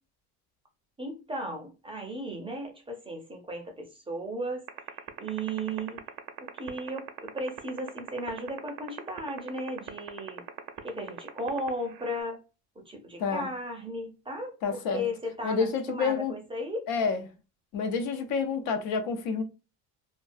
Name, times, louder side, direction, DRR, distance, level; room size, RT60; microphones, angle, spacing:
voice 1, 1.0-6.0 6.4-10.4 10.8-12.4 12.8-16.9, right 1 dB, 15° right, 0.5 m, -35 dB
sound 1, 4.7-12.2, right 18 dB, 60° right, 0.5 m, -37 dB
voice 2, 14.6-15.0 15.4-16.3 16.9-17.2 17.7-19.4, left 5 dB, 65° left, 0.7 m, -28 dB
2.3 x 2.2 x 2.5 m
cardioid pair, 125°, 38 cm